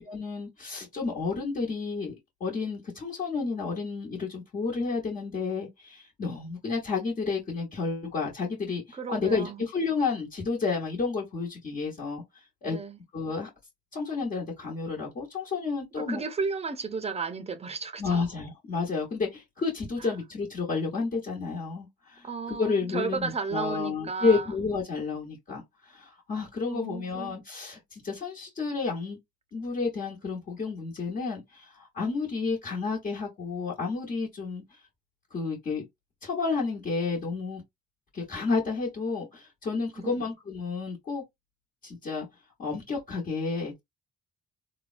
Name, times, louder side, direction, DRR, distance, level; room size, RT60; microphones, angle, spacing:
voice 1, 0.0-2.1 2.4-12.2 12.6-12.8 13.1-13.5 13.9-16.2 18.0-29.2 29.5-34.8 35.3-35.8 36.2-37.6 38.1-41.2 41.8-42.3 42.6-43.8, left 4 dB, 45° left, 1.2 m, -31 dB
voice 2, 8.9-9.7 12.7-13.0 16.0-18.2 20.0-20.1 22.2-24.5 26.7-27.4 40.0-40.3, right 5 dB, 30° right, 0.6 m, -34 dB
3.3 x 2.1 x 2.5 m
cardioid pair, 90°, 20 cm